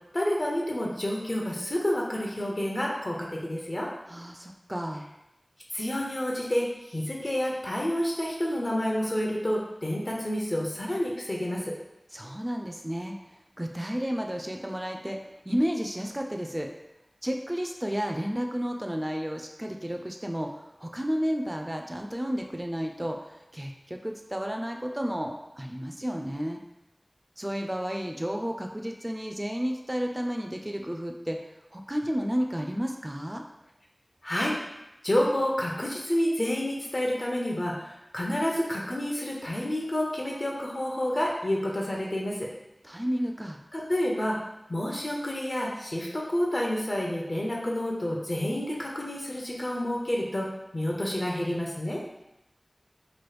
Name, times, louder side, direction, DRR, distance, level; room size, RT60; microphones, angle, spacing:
voice 1, 0.1-3.9 5.7-11.7 34.2-34.6 35.0-42.5 43.7-44.4 44.7-50.5 50.7-52.0, left 1 dB, 60° left, -3 dB, 0.7 m, -29 dB
voice 2, 4.1-5.1 12.1-13.2 13.6-15.2 15.5-16.7 17.2-26.6 27.4-31.4 31.7-33.4 42.8-43.6, equal, 25° right, 2 dB, 0.3 m, -32 dB
3.0 x 2.3 x 3.2 m, 0.90 s
wide cardioid pair, 40°, 0 cm